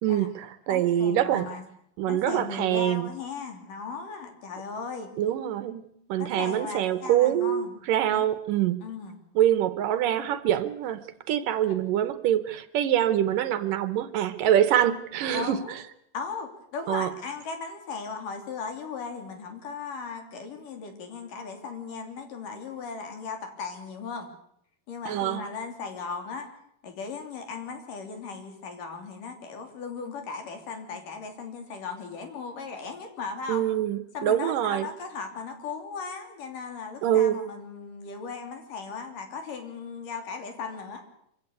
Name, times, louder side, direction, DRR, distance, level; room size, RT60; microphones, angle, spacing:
voice 1, 0.0-1.5 2.0-3.1 5.2-5.8 6.1-8.8 9.4-15.8 16.9-17.1 25.1-25.4 33.5-34.9 37.0-37.4, right 11 dB, 70° right, 2.5 m, -25 dB
voice 2, 0.7-1.6 2.1-5.1 6.2-7.7 8.1-8.3 8.8-9.2 11.7-11.8 15.3-15.8 16.1-24.3 24.9-26.5 26.8-33.6 34.1-41.0, left 5 dB, 65° left, 4.6 m, -37 dB
25.0 x 16.0 x 8.4 m
omnidirectional pair, 4.2 m